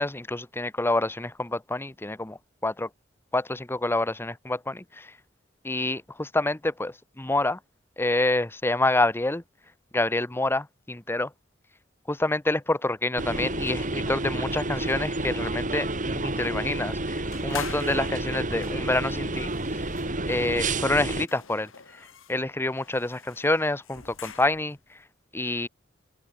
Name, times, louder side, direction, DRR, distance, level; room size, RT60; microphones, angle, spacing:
voice 1, 0.0-2.9 3.3-5.1 5.6-7.6 8.0-9.4 9.9-11.3 12.1-19.9 20.3-21.7 22.3-24.8 25.3-25.7, left 2 dB, 10° left, 0.8 m, -27 dB
sound 1, 13.2-21.3, right 2 dB, 40° right, 4.6 m, -30 dB
sound 2, 17.3-24.8, left 7 dB, 90° left, 4.5 m, -45 dB
open air
head